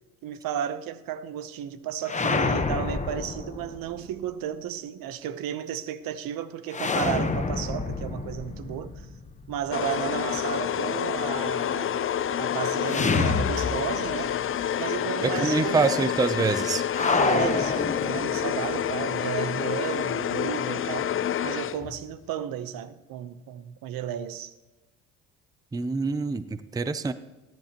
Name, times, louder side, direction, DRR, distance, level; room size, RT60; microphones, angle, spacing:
voice 1, 0.2-9.1 9.5-12.0 12.4-14.4 14.8-16.6 17.0-21.2 21.4-24.5, right 10 dB, 65° right, 0.9 m, -33 dB
sound 1, 2.0-4.0 6.7-9.7 12.9-14.3 14.5-14.6 16.9-18.7, left 4 dB, 20° left, 1.0 m, -28 dB
sound 2, 9.7-22.1, left 9 dB, 35° left, 0.6 m, -28 dB
voice 2, 15.2-16.8 25.7-27.1, right 4 dB, 10° right, 0.5 m, -25 dB
18.5 x 10.5 x 2.9 m
supercardioid pair, 85°, 37 cm